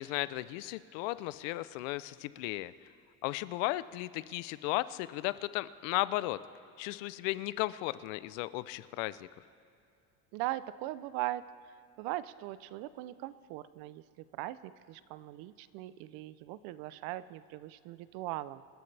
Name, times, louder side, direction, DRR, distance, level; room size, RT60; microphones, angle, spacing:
voice 1, 0.0-2.7 3.2-6.4 6.8-9.3, left 18 dB, 90° left, 16 dB, 0.6 m, -35 dB
voice 2, 10.3-18.6, right 15 dB, 70° right, 16 dB, 0.6 m, -40 dB
27.5 x 11.0 x 3.4 m, 2.6 s
cardioid pair, 140°, 38 cm